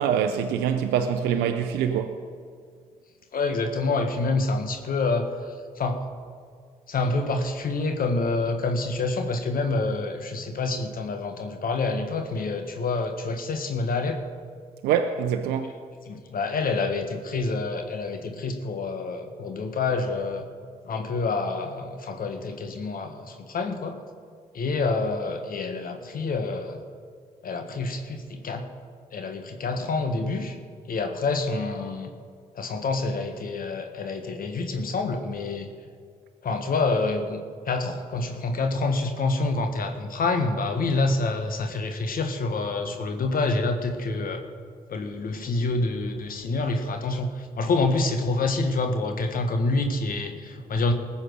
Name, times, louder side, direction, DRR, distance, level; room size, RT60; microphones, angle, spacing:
voice 1, 0.0-2.2 14.8-15.8, right 8 dB, 75° right, 0.7 m, -24 dB
voice 2, 3.3-6.0 6.9-14.2 16.1-20.4 20.8-24.0 24.5-26.8 27.4-28.7 29.1-30.6 30.8-32.1 32.5-35.7 36.4-44.4 44.9-50.9, left 3 dB, 55° left, 1.5 m, -27 dB
19.5 x 7.2 x 6.4 m
hypercardioid pair, 40°, 17 cm